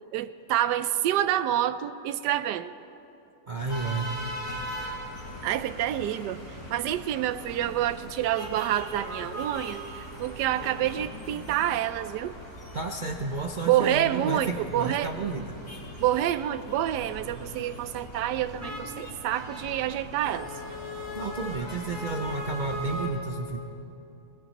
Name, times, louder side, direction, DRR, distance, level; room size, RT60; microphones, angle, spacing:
voice 1, 0.1-2.7 5.4-12.3 13.6-15.1 16.0-20.5, right 12 dB, 80° right, 13 dB, 1.2 m, -28 dB
voice 2, 3.5-4.1 12.7-15.6 21.1-23.6, right 3 dB, 55° right, 2 dB, 0.5 m, -32 dB
sound 1, 3.6-23.1, equal, 65° left, 5.5 m, -39 dB
21.5 x 20.5 x 3.0 m, 2.8 s
omnidirectional pair, 1.8 m